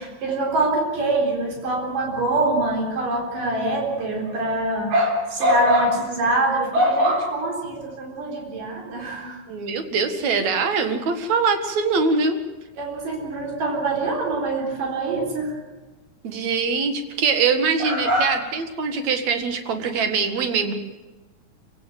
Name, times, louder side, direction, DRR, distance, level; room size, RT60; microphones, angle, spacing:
voice 1, 0.0-9.4 10.7-10.9 12.8-15.6 17.8-18.4, right 1 dB, 75° right, 0 dB, 5.6 m, -23 dB
voice 2, 9.5-12.4 16.2-20.7, right 5 dB, 60° right, 7 dB, 3.1 m, -23 dB
27.0 x 17.0 x 8.0 m, 1.2 s
omnidirectional pair, 3.8 m